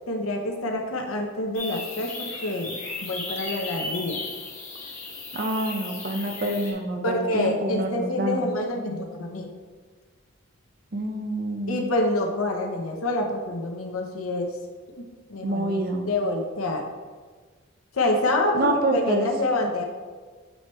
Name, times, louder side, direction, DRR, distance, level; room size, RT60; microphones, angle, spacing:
voice 1, 0.1-4.2 7.0-9.5 11.7-14.6 15.0-15.8 16.1-16.8 17.9-19.8, left 2 dB, 90° left, 2 dB, 0.8 m, -27 dB
sound 1, 1.5-6.7, left 3 dB, 35° left, 1.4 m, -35 dB
voice 2, 5.3-8.5 10.9-11.9 15.4-16.1 18.5-19.3, right 1 dB, 45° right, 4 dB, 0.7 m, -27 dB
7.8 x 3.2 x 4.3 m, 1.5 s
head